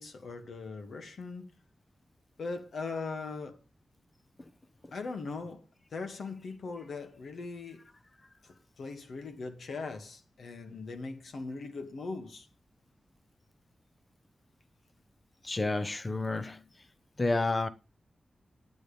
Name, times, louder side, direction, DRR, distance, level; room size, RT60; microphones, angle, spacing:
voice 1, 0.0-1.5 2.4-3.6 4.9-5.6 5.9-7.9 8.8-12.5, left 4 dB, 80° left, 2.0 m, -40 dB
voice 2, 15.4-16.6 17.2-17.7, left 2 dB, 25° left, 0.7 m, -30 dB
10.5 x 9.5 x 5.1 m
wide cardioid pair, 170°, 0 cm